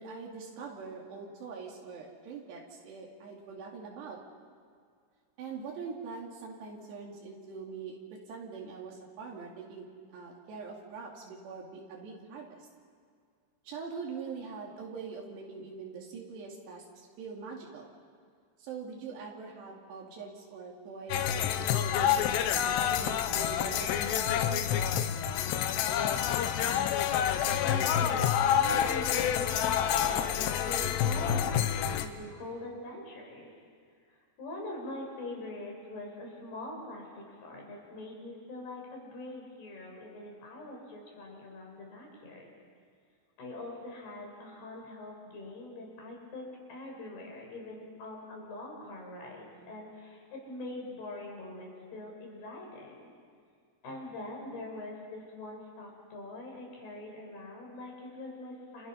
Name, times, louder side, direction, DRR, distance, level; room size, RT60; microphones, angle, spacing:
voice 1, 0.0-4.2 5.4-12.7 13.6-17.9 18.6-22.2 22.5-24.7, right 5 dB, 80° right, -2 dB, 4.7 m, -43 dB
sound 1, 21.1-32.1, left 9 dB, 85° left, 3.2 m, -28 dB
voice 2, 27.6-33.5 34.4-42.5 43.4-53.1 53.8-58.9, left 2 dB, 70° left, 0 dB, 7.2 m, -43 dB
29.0 x 28.5 x 5.7 m, 2.1 s
omnidirectional pair, 4.8 m